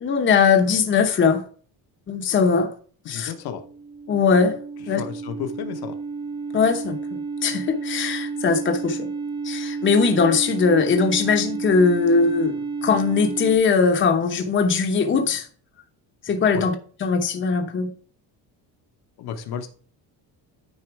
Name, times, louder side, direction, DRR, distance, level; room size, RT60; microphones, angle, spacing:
voice 1, 0.0-1.4 2.1-2.7 3.1-3.3 4.1-4.6 4.9-5.0 6.5-7.0 7.4-9.1 9.4-15.5 16.3-16.7 17.0-17.9, left 5 dB, 30° left, 0.9 m, -20 dB
voice 2, 3.0-3.6 4.9-6.0 16.5-16.6 19.2-19.7, left 8 dB, 65° left, 1.2 m, -32 dB
sound 1, 3.3-13.6, right 4 dB, 15° right, 0.9 m, -31 dB
9.8 x 4.2 x 4.7 m
cardioid pair, 140°, 40 cm